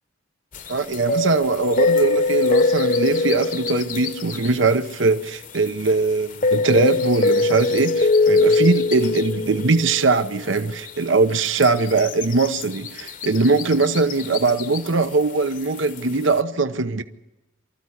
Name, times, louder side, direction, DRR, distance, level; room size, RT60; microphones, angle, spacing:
sound 1, 0.5-5.9 6.3-10.6 10.8-10.9 11.4-15.0 15.6-16.0, left 3 dB, 45° left, 1.0 m, -22 dB
voice 1, 0.7-17.0, right 3 dB, 75° right, 0.9 m, -21 dB
24.5 x 14.0 x 9.9 m
head